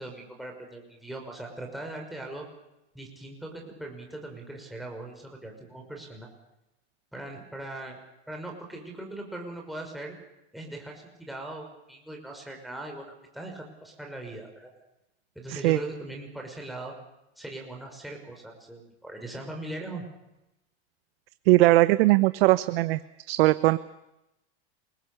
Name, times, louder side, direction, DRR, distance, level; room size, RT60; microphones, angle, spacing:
voice 1, 0.0-2.4 2.9-6.3 7.1-8.0 8.3-10.2 10.5-14.7 15.4-16.9 17.4-20.1, right 2 dB, ahead, 0 dB, 5.7 m, -40 dB
voice 2, 21.5-23.0 23.3-23.8, right 19 dB, 65° right, 14 dB, 1.0 m, -20 dB
29.0 x 21.5 x 7.0 m, 0.91 s
supercardioid pair, 140°, 32 cm